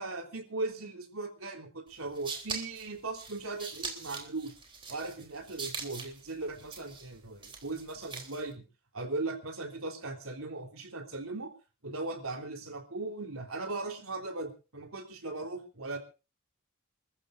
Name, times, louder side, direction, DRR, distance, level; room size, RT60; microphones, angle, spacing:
voice 1, 0.0-4.5 4.9-8.6 8.9-11.5 11.8-16.0, right 3 dB, 75° right, 4 dB, 3.7 m, -38 dB
sound 1, 1.9-8.5, right 4 dB, 25° right, 3.6 m, -42 dB
29.0 x 14.0 x 2.6 m, 0.34 s
head